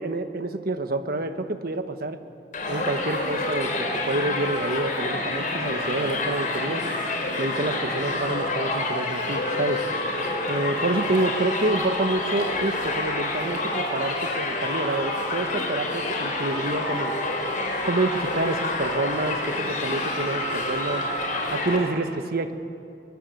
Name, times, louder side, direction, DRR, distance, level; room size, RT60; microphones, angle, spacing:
voice 1, 0.0-2.2 2.7-6.8 7.4-9.8 10.5-17.1 17.8-21.1 21.5-22.5, right 2 dB, 60° right, 8 dB, 1.3 m, -28 dB
Crowd, 2.5-21.8, left 2 dB, 50° left, 4.4 m, -28 dB
23.5 x 20.0 x 7.9 m, 2.5 s
head